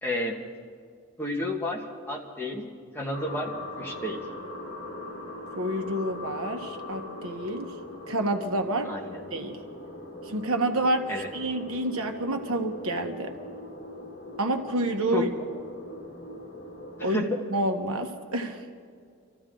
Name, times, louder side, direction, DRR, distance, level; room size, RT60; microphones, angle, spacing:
voice 1, 0.0-0.4 1.2-1.8 2.1-2.6 2.9-3.5 3.8-4.2 8.8-9.2 11.1-11.3 15.1-15.2 17.0-17.3, left 1 dB, 10° left, -1 dB, 1.6 m, -30 dB
sound 1, 3.1-17.1, left 1 dB, 65° left, 1.9 m, -41 dB
voice 2, 5.6-7.7 8.1-8.9 9.3-9.6 10.3-13.3 14.4-15.3 17.0-18.6, right 1 dB, 90° right, 4 dB, 1.4 m, -28 dB
26.0 x 14.5 x 3.9 m, 2.2 s
head